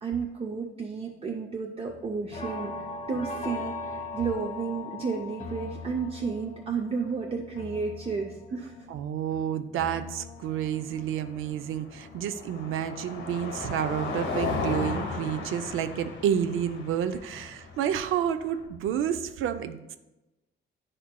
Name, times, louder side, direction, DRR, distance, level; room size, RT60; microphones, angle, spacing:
voice 1, 0.0-2.8 3.1-8.7, right 5 dB, 30° right, 0 dB, 0.5 m, -32 dB
sound 1, 1.9-14.0 14.4-16.0 16.3-16.7 17.0-17.1, left 3 dB, 40° left, 0.9 m, -41 dB
voice 2, 8.9-20.0, right 9 dB, 85° right, 10 dB, 0.4 m, -30 dB
Car passing by, 10.4-18.7, left 4 dB, 70° left, 1.1 m, -36 dB
10.0 x 4.3 x 2.2 m, 1.0 s
cardioid pair, 160°, 21 cm